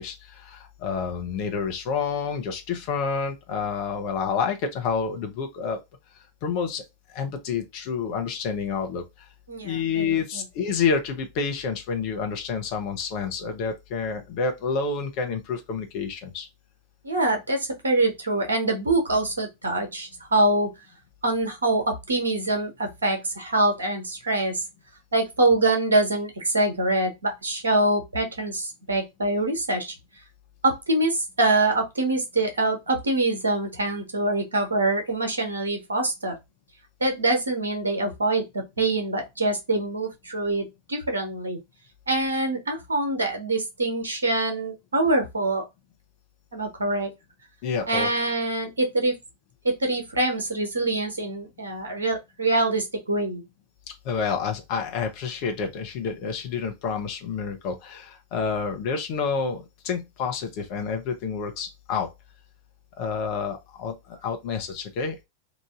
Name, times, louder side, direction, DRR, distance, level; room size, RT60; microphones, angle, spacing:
voice 1, 0.0-5.8 6.4-6.8 7.1-9.3 9.6-16.5 47.6-48.1 54.0-62.1 63.0-65.2, left 5 dB, 45° left, 1.0 m, -29 dB
voice 2, 9.5-10.4 17.0-20.7 21.2-24.6 25.1-29.9 30.6-36.3 37.0-38.4 38.8-41.6 42.1-45.6 46.5-47.1 47.9-49.1 49.6-53.4, right 2 dB, 75° right, 1.1 m, -24 dB
3.1 x 2.6 x 3.6 m
figure-of-eight pair, 90°, 0 cm